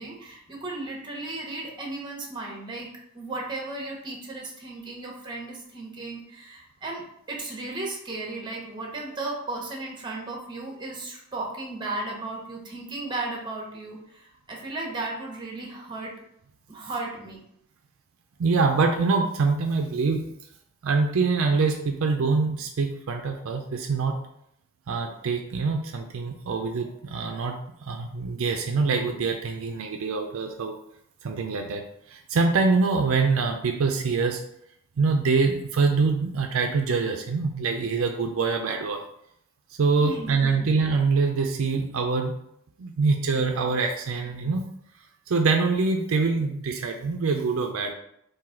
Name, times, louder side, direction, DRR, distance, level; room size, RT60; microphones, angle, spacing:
voice 1, 0.0-16.1 16.7-17.4 26.5-26.6 40.0-40.7, right 2 dB, 20° right, -1 dB, 0.9 m, -35 dB
voice 2, 18.4-20.3 20.8-24.2 24.9-30.7 31.2-31.8 32.1-34.4 35.0-39.0 39.8-42.3 42.8-44.6 45.3-47.9, right 4 dB, 70° right, 4 dB, 0.4 m, -24 dB
3.8 x 2.7 x 4.3 m, 0.73 s
head